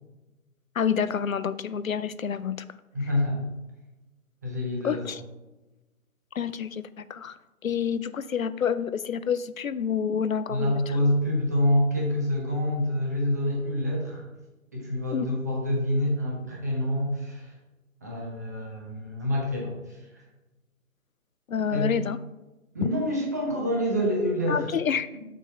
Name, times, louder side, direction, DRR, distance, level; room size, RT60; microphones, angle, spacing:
voice 1, 0.8-2.8 4.8-5.2 6.4-10.8 15.1-15.4 21.5-22.2 24.5-25.1, left 7 dB, 70° left, 15 dB, 0.5 m, -28 dB
voice 2, 2.9-3.4 4.4-5.0 10.5-14.2 14.7-17.5 18.0-20.2 21.7-21.9 22.7-24.7 25.1-25.2, left 1 dB, 15° right, -2 dB, 0.6 m, -27 dB
7.2 x 4.1 x 5.7 m, 1.1 s
figure-of-eight pair, 140°, 42 cm